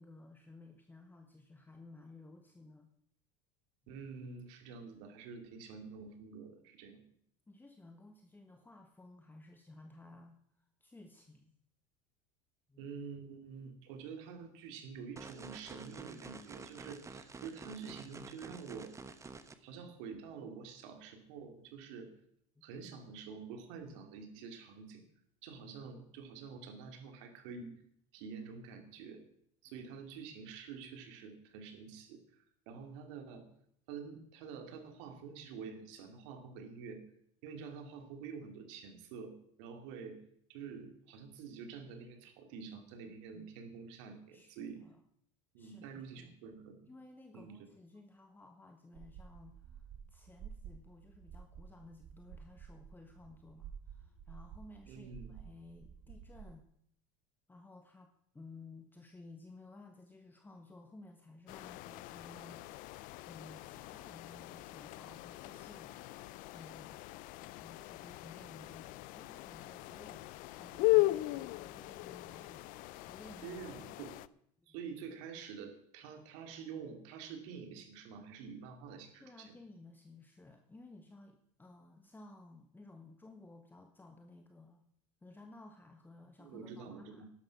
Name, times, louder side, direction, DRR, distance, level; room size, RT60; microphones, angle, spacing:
voice 1, 0.0-2.9 3.8-4.0 7.5-11.5 12.7-12.9 19.6-19.7 22.5-22.7 25.5-25.6 43.1-43.5 44.3-45.0 45.6-46.4 46.9-56.7 57.5-62.9 63.3-66.0 66.5-67.1 67.5-73.6 74.6-74.8 79.2-84.8 85.2-87.3, left 2 dB, 10° left, 4 dB, 1.4 m, -56 dB
voice 2, 3.9-7.0 12.8-18.9 19.6-22.1 22.6-25.0 25.4-27.7 28.1-29.2 29.6-33.5 33.9-37.0 37.4-40.2 40.5-44.8 45.5-46.9 47.3-47.7 54.9-55.3 73.4-74.2 74.7-79.5 86.4-87.3, right 6 dB, 75° right, 5 dB, 2.8 m, -48 dB
sound 1, 15.2-19.5, right 4 dB, 20° right, 1.1 m, -49 dB
sound 2, 48.9-56.4, right 7 dB, 60° right, 2.3 m, -52 dB
sound 3, 61.5-74.3, left 20 dB, 60° left, 0.5 m, -38 dB
12.0 x 11.0 x 6.0 m, 0.69 s
supercardioid pair, 100°, 16 cm